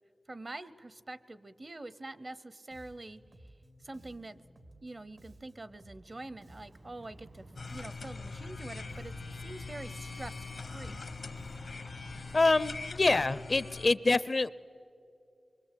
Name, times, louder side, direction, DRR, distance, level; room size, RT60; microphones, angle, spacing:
voice 1, 0.3-3.2 3.8-4.5 4.8-9.1 9.4-11.0, right 2 dB, 45° right, 16 dB, 0.7 m, -45 dB
Bass guitar, 2.7-12.6, right 1 dB, 85° right, 2.4 m, -57 dB
Bicycle, 5.9-13.5, right 2 dB, 70° right, 1.7 m, -52 dB
sound 1, 7.6-13.9, left 4 dB, 80° left, 1.0 m, -42 dB
voice 2, 12.3-14.5, left 3 dB, 55° left, 18 dB, 0.5 m, -26 dB
24.5 x 23.0 x 8.5 m, 2.4 s
wide cardioid pair, 60°, 0 cm